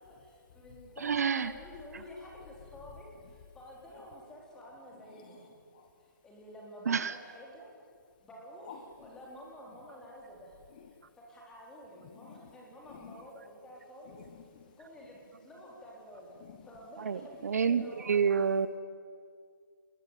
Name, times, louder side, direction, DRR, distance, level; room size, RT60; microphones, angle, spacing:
voice 1, 0.1-5.6 6.2-7.7 8.2-10.6 11.1-14.2 14.6-18.4, equal, 5° left, -3 dB, 4.2 m, -50 dB
voice 2, 1.0-1.5 6.9-7.2 17.0-18.7, right 6 dB, 50° right, 14 dB, 0.9 m, -28 dB
voice 3, 4.9-5.9 8.6-9.1 10.7-11.1 12.0-13.3 14.0-15.2 16.4-16.7 17.9-18.0, left 7 dB, 25° left, 6 dB, 1.2 m, -53 dB
25.5 x 21.5 x 9.3 m, 2.1 s
hypercardioid pair, 165°, 11 cm